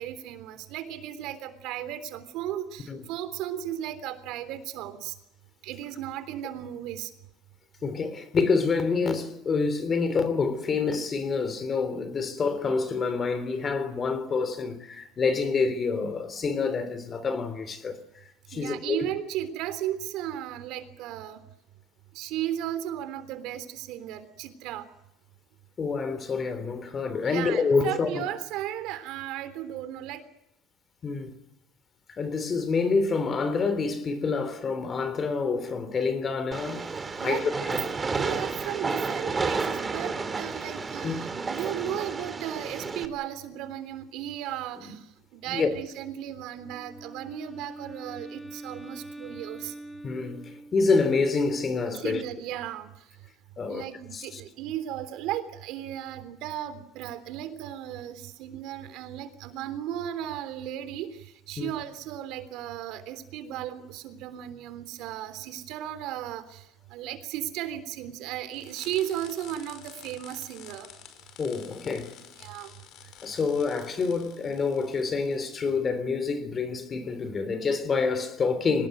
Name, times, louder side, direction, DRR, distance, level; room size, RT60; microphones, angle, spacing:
voice 1, 0.0-5.1 5.6-7.1 18.5-21.4 22.1-24.8 27.2-30.2 37.2-37.5 38.0-49.7 52.0-53.1 53.7-70.9 72.4-72.7, right 11 dB, 65° right, 3.5 m, -35 dB
voice 2, 7.8-18.0 18.5-19.0 25.8-28.2 31.0-31.3 32.1-36.9 37.2-37.8 41.0-41.2 44.8-45.0 45.4-45.7 50.0-52.2 53.6-53.8 54.1-54.4 61.6-61.7 71.4-72.1 73.2-78.9, left 4 dB, 25° left, 3.4 m, -27 dB
Train, 36.5-43.0, right 4 dB, 20° right, 2.3 m, -31 dB
Wind instrument woodwind instrument, 46.5-51.1, right 1 dB, 5° left, 3.5 m, -43 dB
sound 1, 68.5-75.8, left 9 dB, 55° left, 5.2 m, -50 dB
24.5 x 19.5 x 9.3 m
cardioid pair, 145°, 0 cm